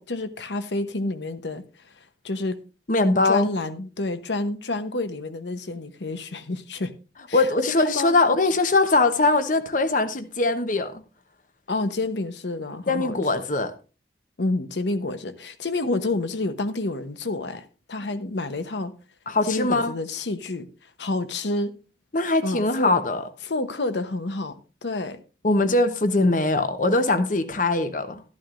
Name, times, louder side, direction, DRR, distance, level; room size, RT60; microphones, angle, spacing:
voice 1, 0.0-1.6 2.2-2.6 3.2-6.9 7.3-8.1 11.7-13.4 14.4-18.9 19.4-20.7 21.0-21.8 22.4-22.9 23.4-24.6 24.8-25.2, left 2 dB, 80° left, 0.9 m, -29 dB
voice 2, 2.9-3.5 7.3-11.0 12.9-13.7 19.3-19.9 22.1-23.2 25.4-28.2, left 2 dB, 45° left, 0.9 m, -21 dB
12.5 x 12.0 x 2.5 m
head